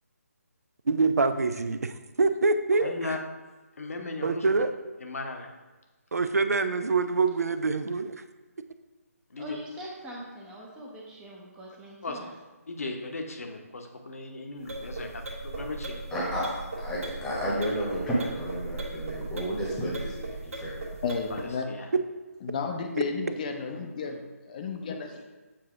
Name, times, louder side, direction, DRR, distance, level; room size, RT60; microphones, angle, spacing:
voice 1, 0.9-2.9 4.2-4.7 6.1-8.1, right 3 dB, 75° right, 10 dB, 0.4 m, -25 dB
voice 2, 2.8-3.2 3.8-4.4 5.0-5.5 9.3-9.6 12.0-12.2 12.7-16.0 21.3-21.9, left 3 dB, 65° left, 3 dB, 0.9 m, -37 dB
voice 3, 9.4-12.3, equal, 10° right, -3 dB, 0.6 m, -42 dB
sound 1, 14.6-21.5, right 2 dB, 60° right, 1.3 m, -38 dB
voice 4, 16.1-20.7, equal, 5° left, -5 dB, 1.0 m, -31 dB
voice 5, 21.0-21.6 22.4-25.2, left 5 dB, 30° left, 4 dB, 0.5 m, -33 dB
7.5 x 2.7 x 4.7 m, 1.2 s
figure-of-eight pair, 145°, 8 cm